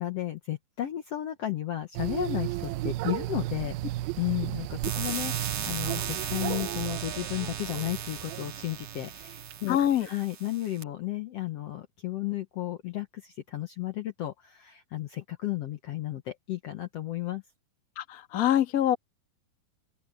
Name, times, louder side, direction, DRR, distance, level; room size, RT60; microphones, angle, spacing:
voice 1, 0.0-3.7 4.2-17.4, left 14 dB, 90° left, 1.3 m, -33 dB
sound 1, 2.0-9.6, right 16 dB, 80° right, 2.4 m, -34 dB
sound 2, 4.8-10.8, right 7 dB, 50° right, 2.9 m, -37 dB
voice 2, 9.7-10.1 18.0-19.0, left 11 dB, 55° left, 0.9 m, -24 dB
open air
omnidirectional pair, 4.4 m